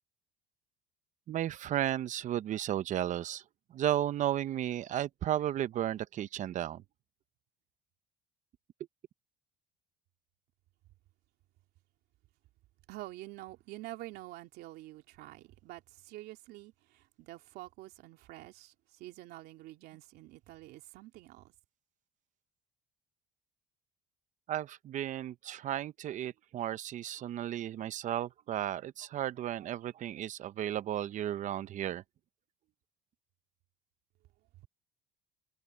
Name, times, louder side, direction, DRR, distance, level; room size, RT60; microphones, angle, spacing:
voice 1, 1.3-3.4 3.7-6.8 24.5-32.0, right 11 dB, 50° right, 0.8 m, -34 dB
voice 2, 12.9-21.5, right 17 dB, 70° right, 2.9 m, -48 dB
cardioid pair, 115°, 17 cm